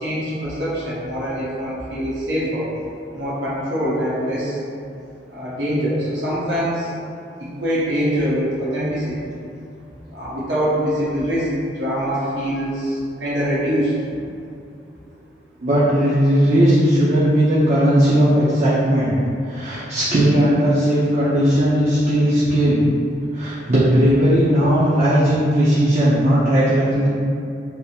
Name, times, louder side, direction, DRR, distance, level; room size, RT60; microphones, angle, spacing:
voice 1, 0.0-2.7 3.1-4.6 5.3-6.9 7.4-9.1 10.1-14.2, equal, 85° right, -9 dB, 1.2 m, -24 dB
voice 2, 15.6-19.1 19.4-22.8 23.3-27.1, equal, 40° right, -9 dB, 0.6 m, -17 dB
3.4 x 2.0 x 4.3 m, 2.5 s
head